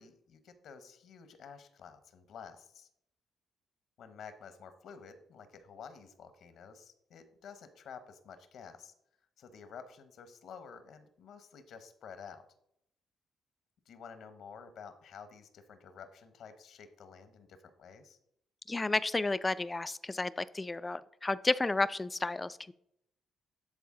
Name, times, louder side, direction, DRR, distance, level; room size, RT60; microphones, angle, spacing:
voice 1, 0.0-2.9 4.0-8.9 9.4-12.4 13.9-18.2, left 6 dB, 70° left, 11 dB, 0.9 m, -51 dB
voice 2, 18.7-22.7, left 2 dB, 20° left, 16 dB, 0.3 m, -32 dB
11.5 x 4.0 x 3.7 m, 0.74 s
cardioid pair, 90°, 0 cm